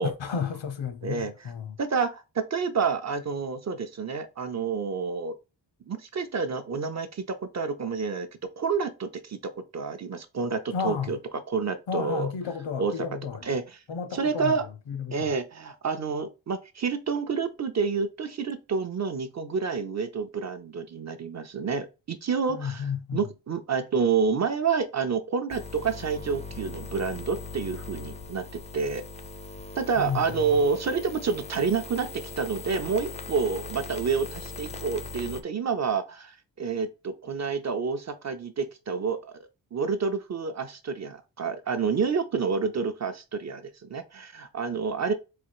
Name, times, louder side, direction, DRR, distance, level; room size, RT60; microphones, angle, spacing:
voice 1, 0.0-1.8 10.7-11.1 11.9-13.5 13.9-14.6 14.9-15.3 22.5-23.2 30.0-30.3, left 6 dB, 90° left, 0.9 m, -32 dB
voice 2, 1.0-1.5 1.8-5.4 5.9-8.3 8.6-11.2 11.5-12.3 12.8-12.9 13.4-13.6 14.1-14.6 15.1-22.9 23.1-29.0 29.8-39.4 39.7-45.1, right 5 dB, 40° right, 0.5 m, -29 dB
sound 1, 25.5-35.4, left 4 dB, 15° left, 0.4 m, -40 dB
4.2 x 2.4 x 4.6 m
wide cardioid pair, 175°, 44 cm